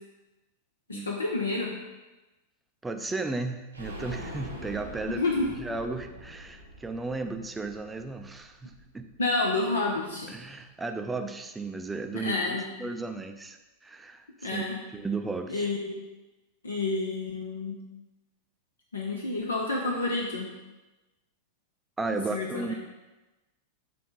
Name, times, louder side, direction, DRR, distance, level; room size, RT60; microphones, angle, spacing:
voice 1, 0.9-1.7 5.1-5.5 9.2-10.3 12.1-12.7 14.4-14.8 15.5-15.9 16.6-17.8 18.9-20.5 22.1-22.7, left 3 dB, 75° left, -1 dB, 0.8 m, -29 dB
voice 2, 2.8-5.2 5.6-9.1 10.3-14.6 14.9-15.7 22.0-22.7, right 3 dB, 10° right, 6 dB, 0.5 m, -35 dB
sound 1, 3.7-9.4 9.7-9.8 10.1-10.2, right 1 dB, 85° right, 1.0 m, -43 dB
8.5 x 3.7 x 3.8 m, 1.1 s
figure-of-eight pair, 90°, 0 cm